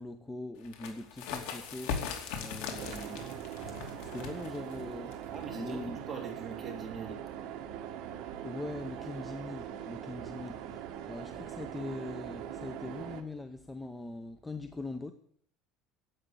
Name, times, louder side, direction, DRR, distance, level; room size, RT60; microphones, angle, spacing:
voice 1, 0.0-3.3 3.7-5.2 5.5-6.0 8.4-15.1, left 2 dB, 5° left, 0.7 m, -42 dB
sound 1, 0.6-6.0, left 6 dB, 85° left, 2.7 m, -40 dB
sound 2, 2.7-13.2, right 10 dB, 55° right, 1.5 m, -42 dB
voice 2, 5.3-7.2, right 5 dB, 15° right, 2.9 m, -42 dB
11.5 x 8.1 x 9.6 m
cardioid pair, 170°, 0 cm